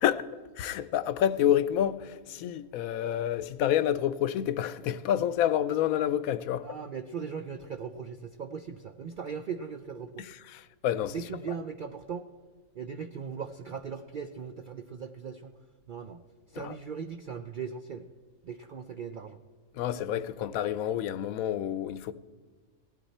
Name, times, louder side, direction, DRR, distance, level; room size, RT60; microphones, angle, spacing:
voice 1, 0.0-6.7 10.2-10.4 10.8-11.1 16.5-16.7 19.7-22.1, left 10 dB, 85° left, 1.0 m, -28 dB
voice 2, 6.6-10.3 11.1-12.3 12.7-15.5 15.9-18.1 18.4-19.4, right 6 dB, 70° right, 0.4 m, -39 dB
17.0 x 12.0 x 4.2 m
omnidirectional pair, 1.4 m